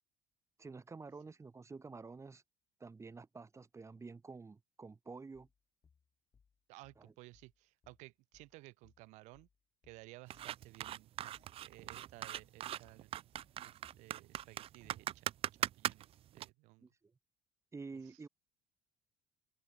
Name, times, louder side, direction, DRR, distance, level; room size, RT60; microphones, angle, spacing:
voice 1, 0.6-2.4 2.8-5.5 7.0-7.1 16.8-17.1 17.7-18.3, right 4 dB, 25° right, 4.4 m, -50 dB
sound 1, 5.3-15.1, left 6 dB, 35° left, 7.4 m, -71 dB
voice 2, 6.7-9.5 9.8-11.4 11.6-13.2 13.6-15.3 15.6-16.9 18.0-18.2, right 22 dB, 80° right, 5.5 m, -57 dB
sound 2, 10.3-16.5, right 12 dB, 55° right, 0.5 m, -40 dB
open air
supercardioid pair, 85°, 12 cm